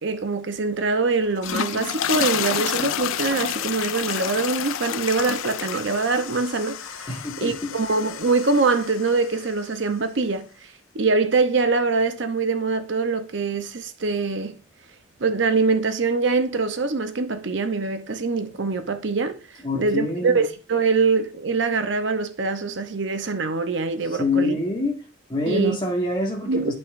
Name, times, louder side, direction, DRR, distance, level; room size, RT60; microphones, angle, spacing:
voice 1, 0.0-7.1 7.4-10.7 10.9-14.5 15.2-19.4 19.7-24.6 25.5-25.8 26.5-26.7, right 4 dB, 65° right, 0.7 m, -23 dB
sound 1, 1.2-9.6, left 9 dB, 85° left, 0.4 m, -30 dB
voice 2, 7.1-7.7 19.6-20.4 24.2-25.0 25.3-26.7, left 2 dB, 25° left, 1.7 m, -25 dB
11.0 x 5.9 x 2.5 m
head